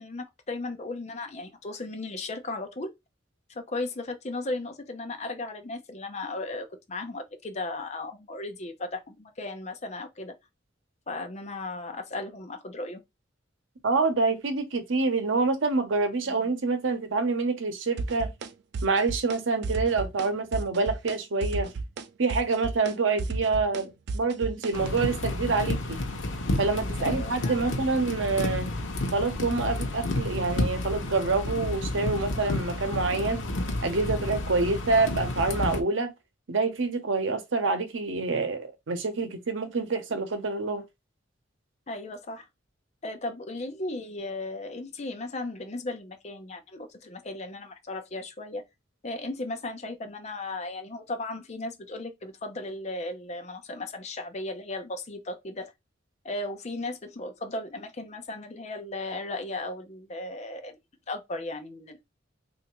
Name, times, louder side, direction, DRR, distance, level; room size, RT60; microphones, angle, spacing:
voice 1, 0.0-2.9 3.5-10.3 11.1-13.0 16.2-16.5 27.0-27.8 41.9-42.5 43.0-48.6 49.0-55.7 56.2-60.8 61.1-62.0, left 2 dB, 35° left, 0.6 m, -36 dB
voice 2, 13.8-18.3 18.8-21.7 22.2-26.0 26.6-28.7 29.1-33.5 33.8-36.1 36.5-40.8, right 3 dB, 90° right, 0.8 m, -27 dB
sound 1, 18.0-18.5 18.7-19.4 19.6-20.3 20.5-21.2 21.4-25.1, right 3 dB, 60° right, 0.4 m, -33 dB
sound 2, 24.7-35.8, left 1 dB, 85° left, 0.8 m, -31 dB
3.3 x 2.5 x 3.0 m
head